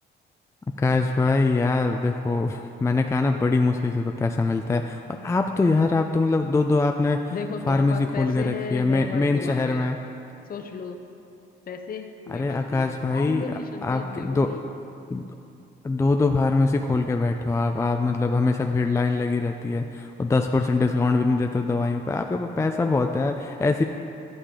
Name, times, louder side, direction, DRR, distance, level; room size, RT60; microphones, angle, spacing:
voice 1, 0.8-7.2 7.7-10.0 12.3-13.4 13.8-14.5 15.1-15.2 15.8-23.8, left 3 dB, 15° left, 4 dB, 0.3 m, -23 dB
voice 2, 7.3-9.9 10.5-11.0 11.7-14.6, left 5 dB, 45° left, 5 dB, 0.7 m, -35 dB
11.5 x 6.6 x 3.7 m, 2.7 s
cardioid pair, 90°, 20 cm